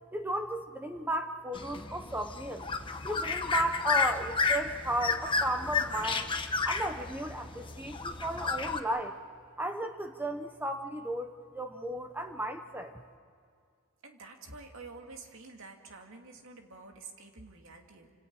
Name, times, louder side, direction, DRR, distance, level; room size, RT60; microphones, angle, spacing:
voice 1, 0.1-2.7 3.0-6.3 6.6-9.2 9.6-13.0, right 1 dB, 10° right, 6 dB, 0.9 m, -34 dB
sound 1, 1.5-8.8, left 4 dB, 25° left, 1.2 m, -32 dB
voice 2, 14.0-18.1, right 3 dB, 65° right, 3 dB, 2.5 m, -49 dB
29.5 x 27.0 x 4.8 m, 2.2 s
head